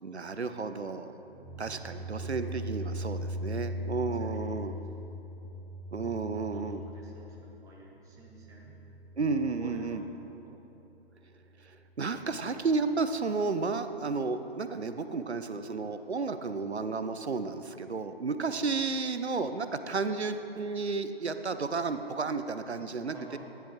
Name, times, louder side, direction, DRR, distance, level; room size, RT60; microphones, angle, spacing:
voice 1, 0.0-1.1 1.6-4.8 5.9-6.8 9.2-10.0 11.6-23.4, right 4 dB, 90° right, 10 dB, 0.6 m, -32 dB
sound 1, 1.2-10.1, equal, 15° left, 1.1 m, -40 dB
voice 2, 2.9-3.4 4.1-5.0 6.3-8.8 9.6-10.6 23.1-23.4, right 2 dB, 10° right, -3 dB, 1.0 m, -53 dB
13.5 x 10.0 x 3.1 m, 3.0 s
figure-of-eight pair, 125°, 32 cm